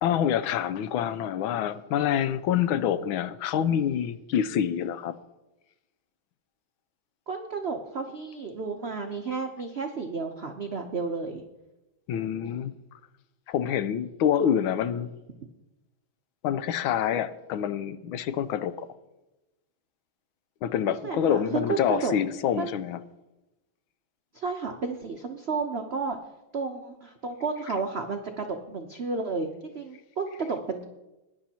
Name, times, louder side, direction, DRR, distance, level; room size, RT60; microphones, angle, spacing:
voice 1, 0.0-5.1 12.1-12.7 13.5-15.1 16.4-18.9 20.6-23.0, left 9 dB, 80° left, 1.4 m, -26 dB
voice 2, 7.3-11.4 20.9-22.1 22.6-22.7 24.3-26.2 26.5-30.8, right 4 dB, 90° right, 0.5 m, -32 dB
21.0 x 10.5 x 2.8 m
omnidirectional pair, 2.2 m